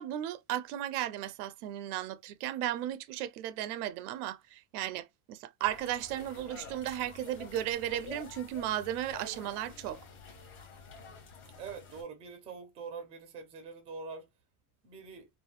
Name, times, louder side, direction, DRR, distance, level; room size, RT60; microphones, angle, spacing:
voice 1, 0.0-10.0, right 12 dB, 80° right, 0.5 m, -35 dB
sound 1, 5.6-12.0, left 4 dB, 30° left, 1.0 m, -49 dB
voice 2, 11.6-14.3 14.8-15.3, right 5 dB, 15° right, 0.4 m, -44 dB
3.4 x 2.1 x 2.3 m
cardioid pair, 165°, 44 cm